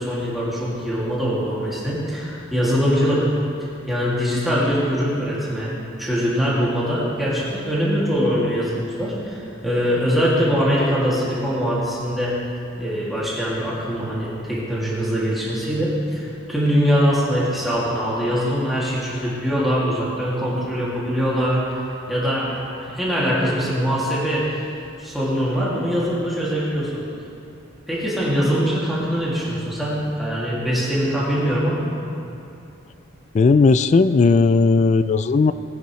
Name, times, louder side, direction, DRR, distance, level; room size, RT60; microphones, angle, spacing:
voice 1, 0.0-3.3 3.9-12.3 12.8-24.5 25.0-27.0 27.9-31.9, equal, ahead, -8 dB, 2.3 m, -22 dB
voice 2, 33.3-35.5, left 4 dB, 35° left, 13 dB, 0.3 m, -16 dB
19.0 x 10.0 x 3.2 m, 2.6 s
head